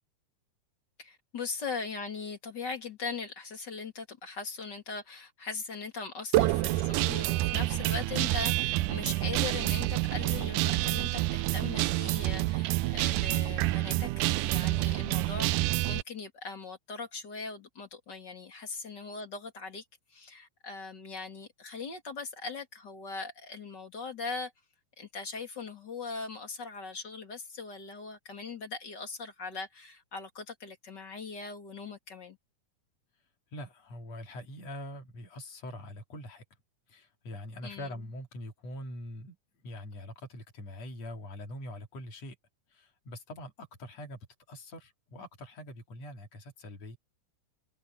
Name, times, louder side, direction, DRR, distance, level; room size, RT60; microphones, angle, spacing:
voice 1, 1.0-19.8 20.1-24.5 25.0-32.4 37.6-37.9, left 4 dB, 35° left, 2.9 m, -40 dB
Guitar, 6.3-16.0, right 18 dB, 80° right, 2.1 m, -28 dB
voice 2, 33.5-36.4 36.9-39.4 39.6-42.4 42.7-44.2 44.5-47.0, left 1 dB, 55° left, 3.8 m, -43 dB
omnidirectional pair, 3.7 m